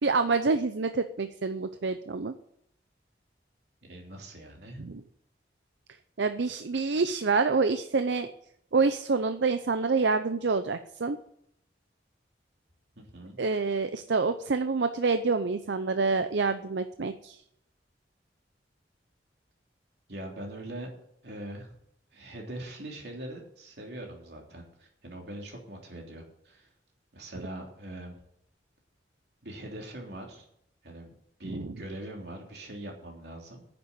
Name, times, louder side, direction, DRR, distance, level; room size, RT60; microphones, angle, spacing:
voice 1, 0.0-2.3 4.8-5.0 6.2-8.3 8.7-11.2 13.4-17.4 31.5-31.8, right 4 dB, 85° right, 10 dB, 0.6 m, -27 dB
voice 2, 3.8-4.8 13.0-13.4 20.1-20.9 21.2-21.8 22.1-26.7 27.1-28.2 29.4-30.4 30.8-31.1 31.4-33.6, right 1 dB, 65° right, 0 dB, 3.2 m, -42 dB
9.8 x 7.0 x 9.0 m, 0.72 s
head